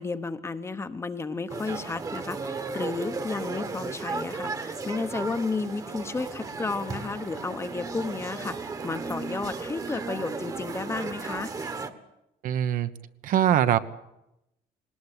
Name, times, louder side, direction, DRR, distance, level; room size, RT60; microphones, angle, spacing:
voice 1, 0.0-11.5, left 4 dB, 15° left, 11 dB, 1.0 m, -32 dB
sound 1, 1.5-11.9, right 4 dB, 20° right, 1.4 m, -35 dB
voice 2, 12.4-12.9 13.2-13.8, right 10 dB, 60° right, 11 dB, 1.1 m, -22 dB
20.5 x 19.0 x 9.9 m, 0.88 s
cardioid pair, 170°, 16 cm